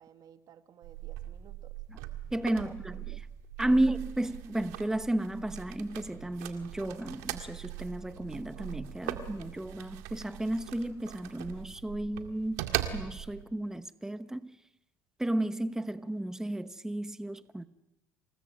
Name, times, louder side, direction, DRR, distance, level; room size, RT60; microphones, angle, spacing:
voice 1, 0.0-1.7 2.6-3.2 3.7-3.8, right 9 dB, 55° right, 1.9 m, -55 dB
sound 1, 0.8-13.4, right 13 dB, 90° right, 2.0 m, -40 dB
voice 2, 2.3-3.3 3.6-12.7 12.9-14.6 15.2-17.7, right 1 dB, 5° right, 1.0 m, -33 dB
27.0 x 19.5 x 7.8 m
supercardioid pair, 90°, 8 cm